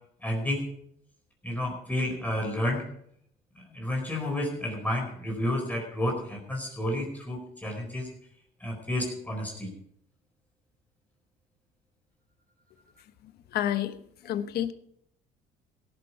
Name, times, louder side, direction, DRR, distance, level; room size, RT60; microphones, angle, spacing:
voice 1, 0.2-0.6 1.4-2.8 3.6-8.1 8.6-9.7, left 1 dB, 10° left, 0 dB, 4.5 m, -31 dB
voice 2, 13.5-14.0 14.2-14.7, left 11 dB, 70° left, 10 dB, 1.2 m, -28 dB
17.5 x 11.0 x 4.7 m, 0.67 s
cardioid pair, 110°, 17 cm